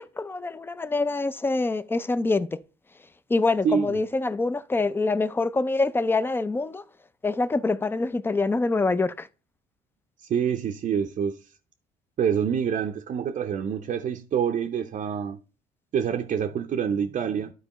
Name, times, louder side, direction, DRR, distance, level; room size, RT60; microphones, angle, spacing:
voice 1, 0.0-2.6 3.3-6.8 7.2-9.3, left 3 dB, 15° left, 0.4 m, -25 dB
voice 2, 3.6-4.0 10.2-11.4 12.2-15.4 15.9-17.5, right 7 dB, 45° right, 0.6 m, -26 dB
12.0 x 4.4 x 3.0 m
cardioid pair, 110°, 17 cm